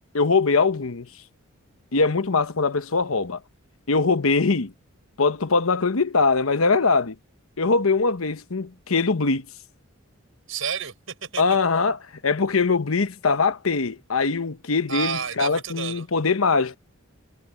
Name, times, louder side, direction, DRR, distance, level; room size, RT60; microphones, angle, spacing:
voice 1, 0.1-1.1 1.9-3.4 3.9-4.7 5.2-7.1 7.6-9.5 11.4-16.8, left 4 dB, 90° left, 1.1 m, -22 dB
voice 2, 10.5-11.4 14.9-16.1, right 7 dB, 75° right, 6.1 m, -30 dB
head